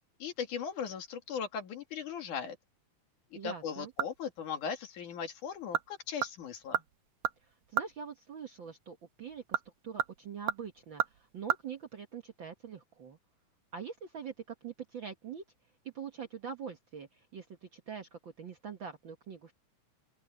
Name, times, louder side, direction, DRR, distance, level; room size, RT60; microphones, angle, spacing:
voice 1, 0.2-2.6 3.3-6.8, left 7 dB, 70° left, 3.7 m, -38 dB
voice 2, 3.3-3.9 7.4-13.2 13.7-15.4 15.9-19.5, right 7 dB, 50° right, 1.5 m, -44 dB
sound 1, 3.5-4.4 4.7-4.8 5.5-5.9 6.2-8.0 9.3-11.6 11.9-12.0, right 11 dB, 85° right, 2.7 m, -34 dB
open air
omnidirectional pair, 3.7 m